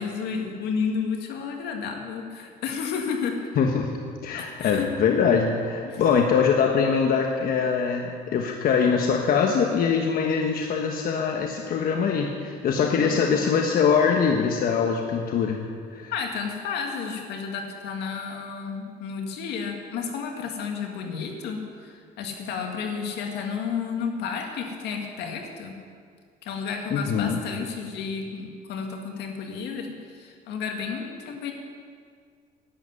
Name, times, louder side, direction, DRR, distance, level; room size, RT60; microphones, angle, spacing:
voice 1, 0.0-3.5 4.3-4.9 5.8-6.2 12.8-13.4 16.1-25.7 26.4-31.5, left 6 dB, 80° left, 3 dB, 2.0 m, -32 dB
voice 2, 3.6-15.6 15.9-16.1 26.9-27.4, left 6 dB, 60° left, 2 dB, 1.2 m, -23 dB
11.5 x 8.0 x 9.6 m, 2.1 s
cardioid pair, 110°, 17 cm